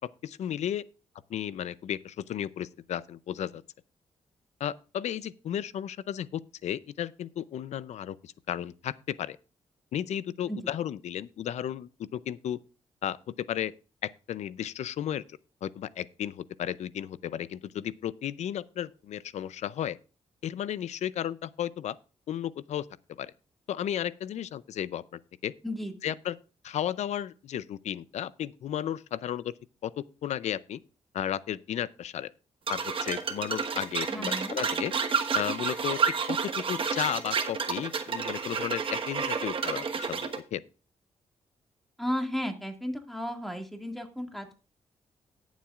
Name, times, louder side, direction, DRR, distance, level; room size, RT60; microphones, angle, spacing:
voice 1, 0.2-0.8 1.3-3.6 4.6-9.4 9.9-12.6 13.0-13.7 14.0-20.0 20.4-22.0 22.3-23.3 23.7-25.5 26.0-26.4 26.6-29.5 29.8-30.8 31.1-32.3 32.7-34.9 35.3-36.0 36.3-40.6, left 10 dB, 80° left, 0.5 m, -34 dB
sound 1, 32.7-40.4, right 5 dB, 50° right, 1.2 m, -30 dB
voice 2, 34.1-34.6 42.0-44.6, equal, ahead, 2.0 m, -34 dB
18.0 x 7.3 x 2.4 m
cardioid pair, 105°, 11 cm